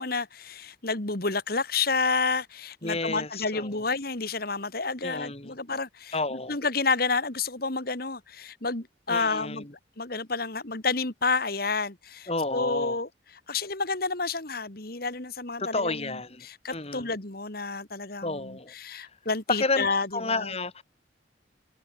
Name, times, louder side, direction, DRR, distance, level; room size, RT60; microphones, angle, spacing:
voice 1, 0.0-9.6 10.0-13.1 13.5-20.5, left 4 dB, 50° left, 2.1 m, -30 dB
voice 2, 2.8-3.8 5.0-5.6 6.1-6.6 9.1-9.7 12.3-13.0 15.6-16.5 16.7-17.1 18.2-19.1 19.5-20.8, left 3 dB, 30° left, 2.3 m, -31 dB
head